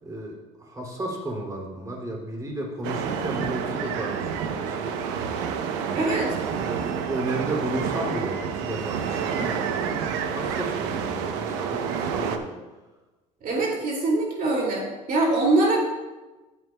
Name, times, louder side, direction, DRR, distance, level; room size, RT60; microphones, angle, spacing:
voice 1, 0.0-5.3 5.7-6.1 6.6-12.5, right 1 dB, 20° right, 0 dB, 2.7 m, -33 dB
sound 1, 2.8-12.4, right 7 dB, 85° right, 0.8 m, -29 dB
voice 2, 5.9-6.3 13.4-14.8 15.1-15.8, right 2 dB, 50° right, -2 dB, 2.4 m, -23 dB
14.0 x 8.5 x 2.3 m, 1.2 s
supercardioid pair, 90°, 18 cm